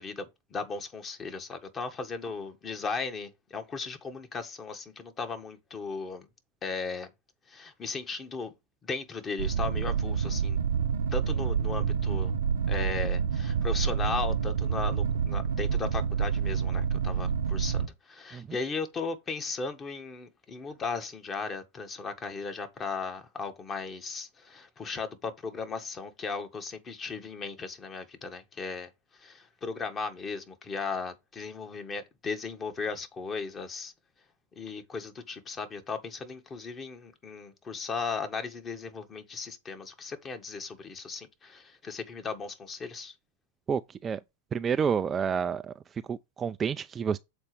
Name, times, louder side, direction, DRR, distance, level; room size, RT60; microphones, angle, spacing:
voice 1, 0.0-6.3 6.6-7.1 7.5-8.5 8.8-10.6 11.1-12.3 12.7-33.9 34.5-43.1, left 4 dB, 25° left, 1.6 m, -36 dB
sound 1, 9.4-17.9, right 7 dB, 85° right, 1.0 m, -28 dB
voice 2, 43.7-44.2 44.5-47.2, right 7 dB, 25° right, 0.4 m, -30 dB
7.1 x 4.3 x 4.9 m
hypercardioid pair, 105°, 0 cm